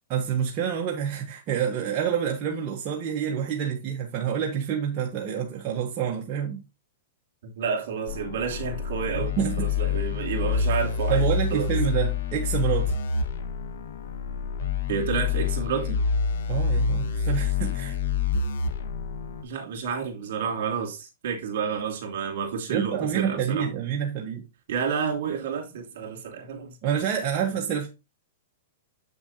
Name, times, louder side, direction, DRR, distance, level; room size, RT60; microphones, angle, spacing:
voice 1, 0.1-6.6 9.2-9.7 11.1-13.0 16.5-18.0 22.7-24.4 26.8-27.9, right 8 dB, 35° right, 1.2 m, -27 dB
voice 2, 7.4-11.2 11.5-11.7 14.9-16.0 19.4-23.7 24.7-26.8, right 6 dB, 65° right, 2.9 m, -30 dB
sound 1, 8.1-19.4, left 5 dB, 70° left, 1.4 m, -27 dB
7.6 x 6.8 x 2.8 m
hypercardioid pair, 145°, 0 cm